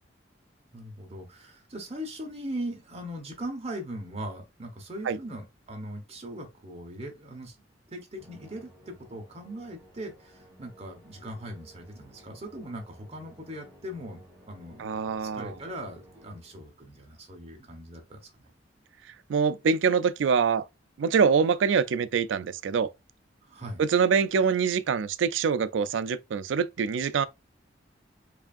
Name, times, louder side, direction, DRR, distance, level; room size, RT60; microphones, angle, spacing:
voice 1, 0.7-7.5 7.9-14.9 15.2-18.3 23.4-23.8, right 1 dB, 35° right, 1.1 m, -40 dB
Musical instrument, 8.2-16.7, equal, 15° right, 1.6 m, -55 dB
voice 2, 14.8-15.5 19.3-20.6 21.0-22.9 23.8-27.3, right 6 dB, 75° right, 0.4 m, -24 dB
4.8 x 2.6 x 2.5 m
head